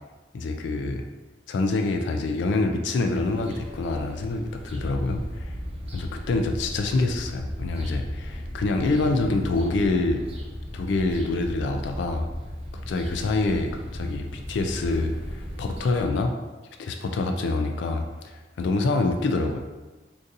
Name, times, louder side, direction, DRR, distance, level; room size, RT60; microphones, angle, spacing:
voice 1, 0.3-1.0 1.5-5.6 5.9-10.2 10.7-12.3 12.9-16.3 16.8-19.6, left 3 dB, 75° left, 5 dB, 0.3 m, -26 dB
sound 1, 3.1-16.0, equal, 35° right, 0.6 m, -41 dB
sound 2, 4.6-15.6, equal, 10° left, 0.8 m, -37 dB
3.9 x 2.6 x 2.5 m, 1.2 s
head